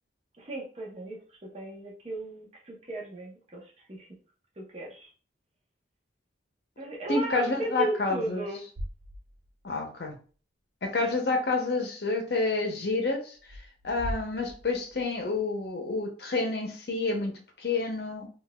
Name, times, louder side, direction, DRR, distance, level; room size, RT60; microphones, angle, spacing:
voice 1, 0.4-4.1 4.6-5.1 6.8-8.7, right 1 dB, 35° right, -1 dB, 0.7 m, -36 dB
voice 2, 7.1-8.5 9.6-10.2 10.8-13.4 13.8-18.3, left 3 dB, 55° left, 2 dB, 0.6 m, -29 dB
sound 1, 8.8-9.7 10.1-10.2 13.4-15.4, equal, 60° right, 0.4 m, -40 dB
3.8 x 2.3 x 2.2 m, 0.39 s
head